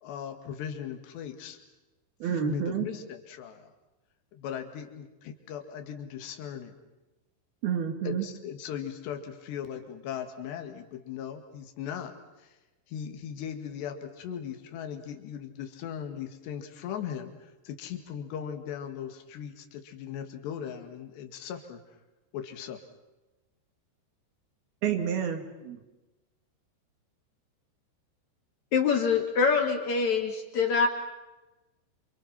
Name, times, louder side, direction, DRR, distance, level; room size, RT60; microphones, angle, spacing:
voice 1, 0.0-1.6 2.3-3.7 4.3-6.7 8.1-12.6 12.9-21.8 22.3-22.8, left 8 dB, 70° left, 6 dB, 4.1 m, -38 dB
voice 2, 2.2-2.9 7.6-8.3 24.8-25.8, right 8 dB, 60° right, 5 dB, 3.8 m, -29 dB
voice 3, 28.7-30.9, left 5 dB, 45° left, 4 dB, 3.3 m, -24 dB
28.0 x 28.0 x 5.9 m, 1.1 s
omnidirectional pair, 5.4 m